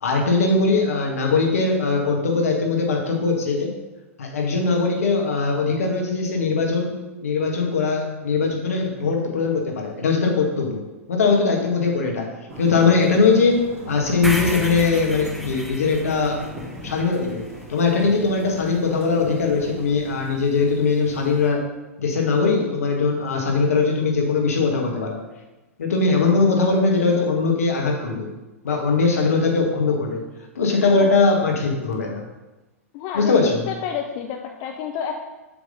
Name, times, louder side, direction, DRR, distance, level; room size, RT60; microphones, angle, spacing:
voice 1, 0.0-3.7 4.2-7.0 7.2-10.8 11.1-12.3 12.6-13.6 13.9-16.4 16.8-17.4 17.7-21.6 22.0-25.2 25.8-28.3 28.6-30.2 30.5-32.3 33.1-33.7, left 4 dB, 70° left, 1 dB, 1.5 m, -20 dB
Thunder / Rain, 12.5-21.5, equal, 40° right, 2.3 m, -40 dB
sound 1, 14.2-18.4, equal, ahead, 0.5 m, -33 dB
voice 2, 32.9-35.2, left 8 dB, 40° left, 3 dB, 0.6 m, -30 dB
7.2 x 3.5 x 5.3 m, 1.1 s
figure-of-eight pair, 100°, 8 cm